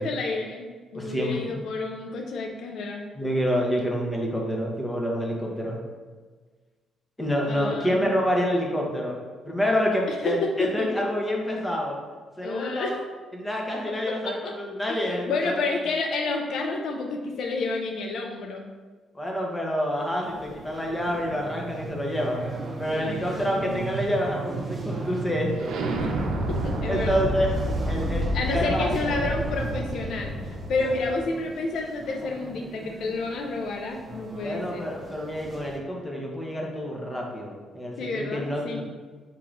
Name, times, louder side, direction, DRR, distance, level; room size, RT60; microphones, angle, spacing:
voice 1, 0.0-3.1 7.5-8.1 10.1-10.9 12.4-12.9 14.1-14.5 14.9-18.6 22.9-23.8 26.5-27.3 28.3-30.3 30.7-34.9 38.0-38.8, left 3 dB, 70° left, 2 dB, 0.4 m, -30 dB
voice 2, 0.9-1.6 3.2-5.8 7.2-9.2 9.4-12.0 12.4-13.0 13.3-15.6 19.1-22.4 22.8-25.8 26.9-27.5 27.9-29.3 30.8-31.1 31.3-31.4 34.4-38.8, equal, 15° left, -1 dB, 1.0 m, -28 dB
sound 1, 20.2-35.8, right 2 dB, 30° right, 0.7 m, -41 dB
sound 2, 21.0-31.2, right 1 dB, 80° right, 0.6 m, -31 dB
4.6 x 2.9 x 3.8 m, 1.4 s
cardioid pair, 90°, 0 cm